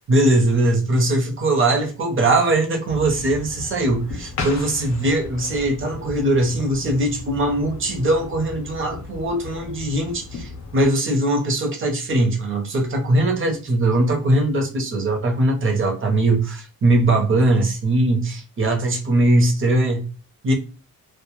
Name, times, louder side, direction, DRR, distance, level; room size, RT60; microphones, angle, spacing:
voice 1, 0.1-20.0 20.4-20.5, right 1 dB, 35° right, 0.6 m, -20 dB
sound 1, 2.9-10.9, left 3 dB, 45° left, 0.6 m, -35 dB
2.1 x 2.0 x 2.8 m
wide cardioid pair, 145°, 37 cm